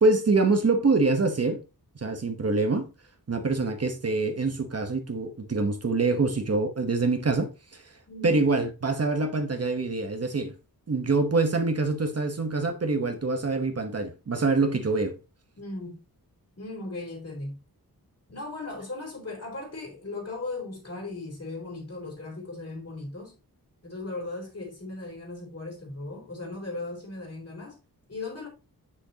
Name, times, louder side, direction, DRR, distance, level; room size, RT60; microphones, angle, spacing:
voice 1, 0.0-1.6 2.0-2.9 3.3-7.9 8.2-10.5 10.9-15.2, right 3 dB, 40° right, 1.0 m, -25 dB
voice 2, 8.1-8.4 15.6-16.0 16.6-17.6 18.3-23.4 23.8-27.8 28.1-28.5, left 2 dB, 40° left, 3.8 m, -37 dB
7.9 x 6.5 x 2.8 m
wide cardioid pair, 125°, 37 cm